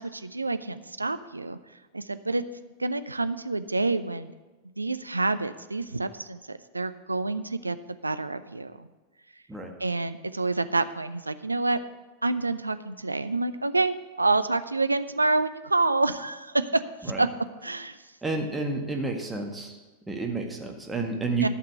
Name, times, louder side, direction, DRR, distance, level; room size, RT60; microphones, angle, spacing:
voice 1, 0.0-1.6 1.9-2.4 2.8-4.3 4.8-7.8 8.0-8.9 9.8-11.8 12.2-17.3 17.6-18.0 21.4-21.5, right 3 dB, 80° right, 12 dB, 0.5 m, -27 dB
voice 2, 18.2-19.8 20.1-21.5, right 3 dB, 10° right, 2 dB, 1.8 m, -30 dB
12.0 x 5.9 x 8.1 m, 1.2 s
figure-of-eight pair, 90°, 0 cm